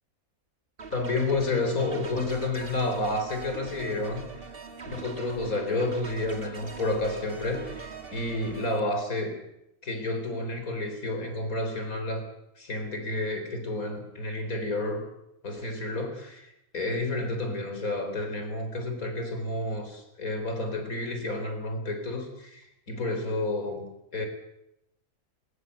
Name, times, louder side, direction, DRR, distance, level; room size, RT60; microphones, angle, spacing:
sound 1, 0.8-8.8, right 4 dB, 40° right, 2.5 m, -42 dB
voice 1, 0.9-4.2 4.9-9.4 9.8-12.2 12.6-15.0 15.4-23.8 24.1-24.3, left 2 dB, 90° left, 6 dB, 4.5 m, -30 dB
22.0 x 20.0 x 8.2 m, 0.81 s
omnidirectional pair, 1.4 m